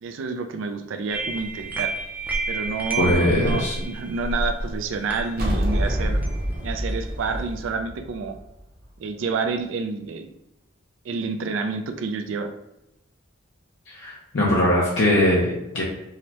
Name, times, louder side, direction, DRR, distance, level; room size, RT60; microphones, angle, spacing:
voice 1, 0.0-1.9 2.5-6.2 6.6-8.4 9.0-10.3 11.0-12.5, right 4 dB, 80° right, 6 dB, 0.3 m, -29 dB
sound 1, 1.1-7.7, right 2 dB, 10° right, 0.5 m, -31 dB
voice 2, 3.0-3.8 13.9-15.8, left 1 dB, 70° left, -4 dB, 0.7 m, -21 dB
sound 2, 5.4-8.8, equal, 50° right, 0.7 m, -26 dB
4.8 x 2.1 x 2.8 m, 0.90 s
head